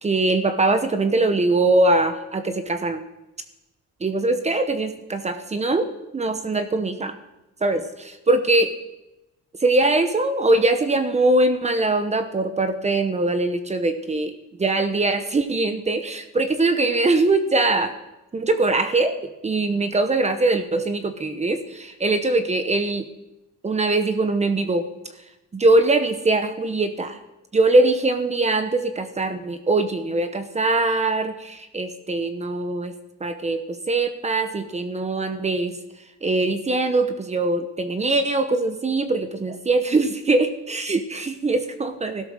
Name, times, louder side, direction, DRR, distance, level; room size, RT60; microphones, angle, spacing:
voice 1, 0.0-3.1 4.0-7.1 7.6-8.7 9.6-14.3 14.6-17.9 18.3-23.1 23.6-24.9 25.5-27.2 27.5-32.9 33.2-35.8 36.2-42.3, right 2 dB, 25° right, 9 dB, 1.0 m, -22 dB
16.0 x 12.5 x 6.5 m, 0.94 s
wide cardioid pair, 175°, 29 cm